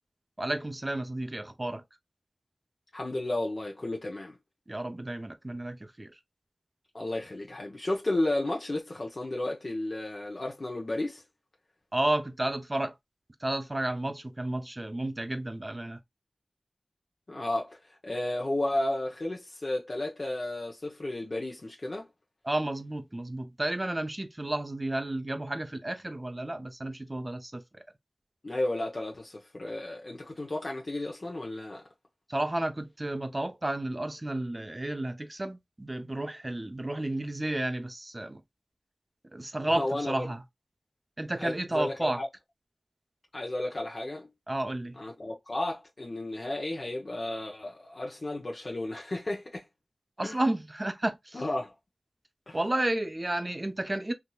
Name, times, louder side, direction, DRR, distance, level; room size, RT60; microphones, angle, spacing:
voice 1, 0.4-1.8 4.7-6.2 11.9-12.9 13.4-16.0 22.4-27.8 32.3-38.4 39.3-40.4 41.2-42.2 44.5-45.0 50.2-51.4 52.5-54.1, right 1 dB, 30° right, 0.7 m, -32 dB
voice 2, 2.9-4.4 6.9-11.2 17.3-17.8 18.0-22.1 28.4-31.8 39.7-40.3 41.4-42.3 43.3-44.3 45.0-49.6 50.2-50.4 51.3-51.7 52.5-52.6, left 1 dB, 50° left, 0.8 m, -33 dB
3.5 x 2.8 x 2.3 m
wide cardioid pair, 70°, 0 cm